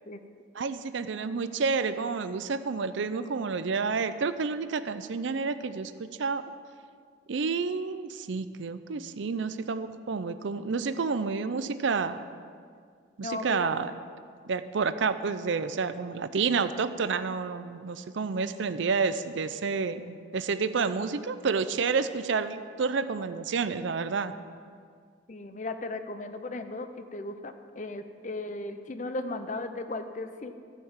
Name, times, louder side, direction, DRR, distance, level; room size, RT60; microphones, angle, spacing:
voice 1, 0.5-6.4 7.3-12.2 13.2-13.9 14.4-24.3, right 5 dB, 70° right, 12 dB, 0.5 m, -29 dB
voice 2, 13.2-13.7 25.3-30.5, left 2 dB, 40° left, 9 dB, 0.6 m, -36 dB
14.0 x 5.8 x 7.2 m, 2.1 s
head